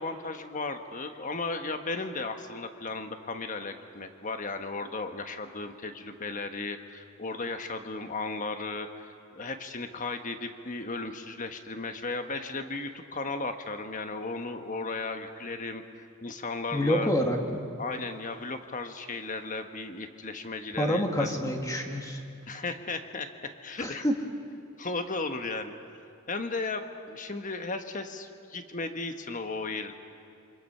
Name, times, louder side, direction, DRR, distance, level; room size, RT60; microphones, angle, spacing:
voice 1, 0.0-17.1 17.8-21.3 22.5-24.0 24.8-25.7 26.3-29.9, left 3 dB, 35° left, 7 dB, 1.3 m, -35 dB
voice 2, 16.7-17.6 20.8-22.2 23.8-24.1, equal, 15° left, 3 dB, 1.8 m, -27 dB
28.0 x 25.0 x 5.6 m, 2.5 s
head